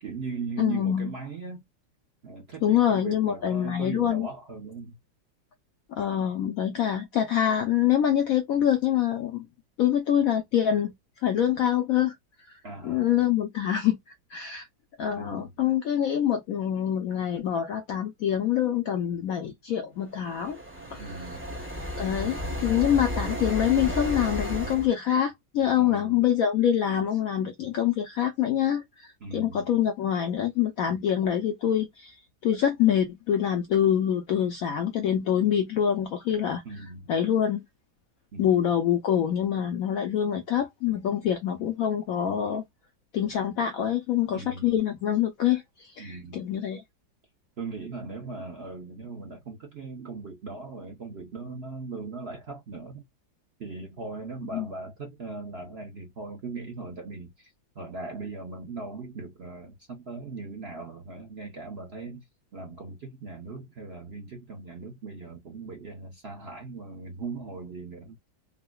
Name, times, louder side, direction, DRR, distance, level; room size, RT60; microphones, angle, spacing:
voice 1, 0.0-1.6 2.2-5.0 12.6-13.3 15.1-15.5 21.0-21.5 25.8-26.3 29.2-29.6 36.6-37.1 38.3-38.6 44.3-44.8 46.0-46.4 47.6-53.0 53.6-62.3 62.5-68.2, right 4 dB, 50° right, 0.7 m, -39 dB
voice 2, 0.6-1.1 2.6-4.3 6.0-9.4 9.8-10.9 11.2-12.1 12.8-14.0 14.3-14.7 15.0-20.6 20.9-21.3 22.0-32.1 32.4-36.6 37.1-37.6 38.4-42.6 43.1-46.8 54.5-54.7, left 10 dB, 70° left, 0.8 m, -25 dB
sound 1, 20.2-24.9, left 1 dB, 10° right, 0.5 m, -33 dB
3.7 x 2.1 x 2.3 m
omnidirectional pair, 2.0 m